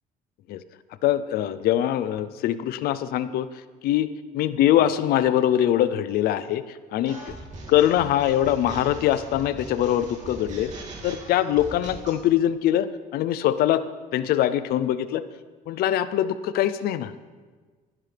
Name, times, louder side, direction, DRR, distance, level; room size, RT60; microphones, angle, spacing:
voice 1, 1.0-3.5 3.8-6.6 6.9-7.2 7.7-10.7 11.0-13.9 14.1-15.2 15.7-17.1, left 11 dB, 70° left, 14 dB, 0.6 m, -23 dB
sound 1, 7.1-12.2, right 3 dB, 45° right, 2.5 m, -40 dB
16.5 x 10.5 x 3.4 m, 1.4 s
cardioid pair, 120°, 16 cm